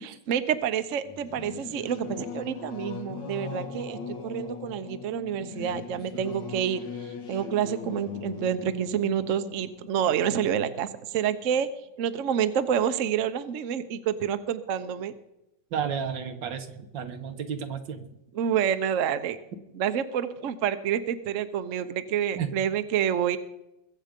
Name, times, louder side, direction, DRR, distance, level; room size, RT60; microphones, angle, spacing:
voice 1, 0.0-11.7 12.0-15.1 18.3-19.4 19.7-23.4, right 9 dB, 55° right, 11 dB, 1.0 m, -28 dB
Singing / Musical instrument, 1.0-11.1, left 5 dB, 80° left, 2.5 m, -39 dB
voice 2, 15.7-18.1 22.3-22.5, right 7 dB, 85° right, 7 dB, 2.0 m, -32 dB
21.5 x 7.7 x 5.2 m, 0.87 s
omnidirectional pair, 1.9 m